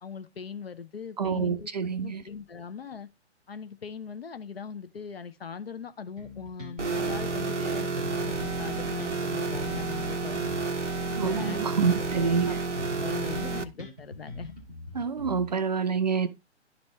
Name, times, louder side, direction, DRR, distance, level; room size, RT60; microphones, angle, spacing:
voice 1, 0.0-1.7 2.0-3.1 3.5-10.6 11.1-11.6 12.0-12.6 13.0-14.5, left 6 dB, 55° left, 1.0 m, -40 dB
voice 2, 1.2-2.2 11.2-12.6 14.9-16.3, right 5 dB, 35° right, 0.6 m, -27 dB
Bass guitar, 6.2-7.6 7.9-12.4 12.7-15.8, left 2 dB, 5° left, 0.5 m, -42 dB
sound 1, 6.8-13.6, right 4 dB, 90° right, 0.8 m, -30 dB
11.0 x 4.2 x 3.1 m
figure-of-eight pair, 135°, 35 cm